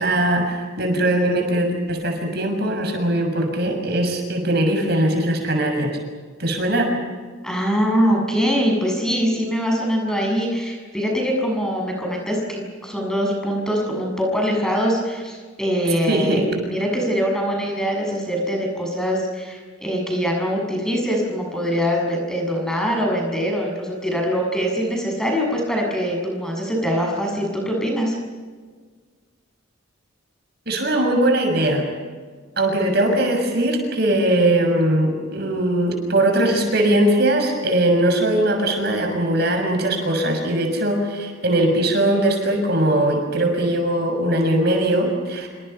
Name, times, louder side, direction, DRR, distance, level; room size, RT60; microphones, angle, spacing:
voice 1, 0.0-6.0 6.4-6.9 16.0-16.6 30.7-31.9 32.6-45.5, right 1 dB, 50° right, 4 dB, 6.7 m, -20 dB
voice 2, 7.4-28.2, equal, 5° left, 0 dB, 6.9 m, -23 dB
27.5 x 26.0 x 5.7 m, 1.5 s
head